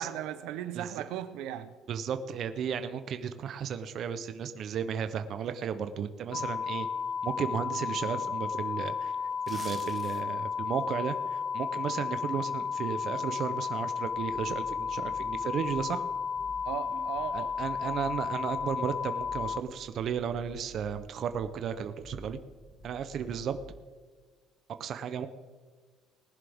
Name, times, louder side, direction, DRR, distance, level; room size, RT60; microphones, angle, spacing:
voice 1, 0.0-1.7 16.6-17.6 17.8-18.0, right 11 dB, 85° right, 0.8 m, -37 dB
voice 2, 1.9-6.9 7.2-9.1 9.5-16.0 17.3-22.4 22.8-23.6 24.8-25.3, right 7 dB, 45° right, 0.7 m, -34 dB
sound 1, 6.3-19.6, left 6 dB, 35° left, 0.4 m, -33 dB
sound 2, 9.3-10.5 10.9-11.1, right 4 dB, 25° right, 1.2 m, -46 dB
sound 3, 14.1-23.7, equal, 5° right, 3.2 m, -51 dB
19.0 x 11.0 x 3.5 m
cardioid pair, 155°, 0 cm